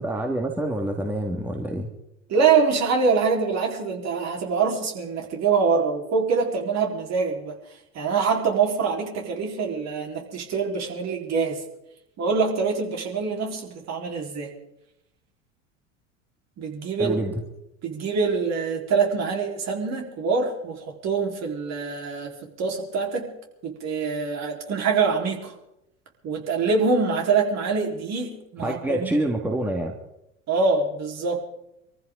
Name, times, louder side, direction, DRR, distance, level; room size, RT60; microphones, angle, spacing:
voice 1, 0.0-1.9 17.0-17.3 28.6-30.0, right 1 dB, 5° right, 2 dB, 2.0 m, -27 dB
voice 2, 2.3-7.5 7.9-11.6 12.2-14.5 16.6-17.2 17.8-22.3 22.6-23.3 23.6-25.5 26.2-29.2 30.5-31.4, right 5 dB, 45° right, 1 dB, 4.4 m, -24 dB
24.5 x 14.5 x 3.9 m, 0.85 s
hypercardioid pair, 80°, 38 cm